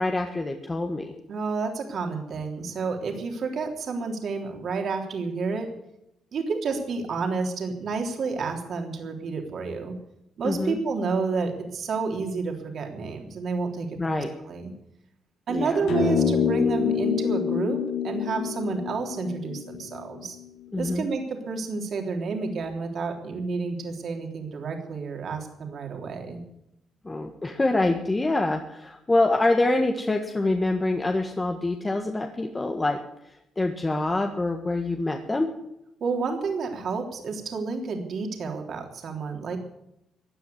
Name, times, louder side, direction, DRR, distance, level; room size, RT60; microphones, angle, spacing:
voice 1, 0.0-1.1 10.4-10.8 14.0-14.3 15.5-15.8 20.7-21.1 27.1-33.0 33.6-35.5, left 2 dB, 20° left, 3 dB, 1.6 m, -25 dB
voice 2, 1.3-5.7 6.3-9.9 10.4-14.7 15.5-17.8 18.0-20.4 20.8-26.4 36.0-39.6, right 4 dB, 60° right, 2 dB, 3.4 m, -30 dB
sound 1, 15.9-20.4, left 7 dB, 90° left, 4.3 m, -26 dB
15.5 x 9.6 x 9.3 m, 0.83 s
cardioid pair, 90°, 0 cm